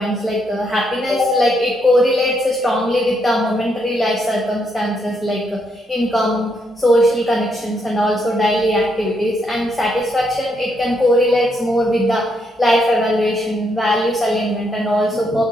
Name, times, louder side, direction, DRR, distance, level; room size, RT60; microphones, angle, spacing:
voice 1, 0.0-15.4, equal, 10° left, -2 dB, 0.7 m, -18 dB
3.6 x 2.8 x 4.8 m, 1.1 s
cardioid pair, 90°, 0 cm